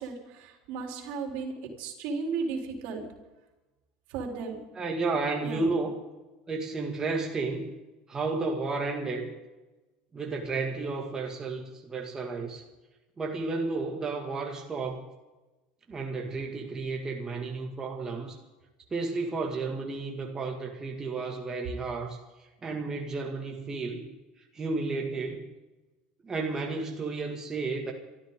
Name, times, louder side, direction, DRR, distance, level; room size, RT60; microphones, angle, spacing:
voice 1, 0.0-3.0 4.1-4.6 5.4-5.7, right 4 dB, 70° right, 1 dB, 3.9 m, -35 dB
voice 2, 4.8-6.0 6.5-7.7 8.1-9.3 10.1-12.6 13.2-15.1 15.9-18.4 18.9-24.1 24.5-25.5 26.2-27.9, right 3 dB, 25° right, 1 dB, 2.2 m, -32 dB
25.5 x 13.5 x 3.8 m, 1.1 s
supercardioid pair, 105°, 3 cm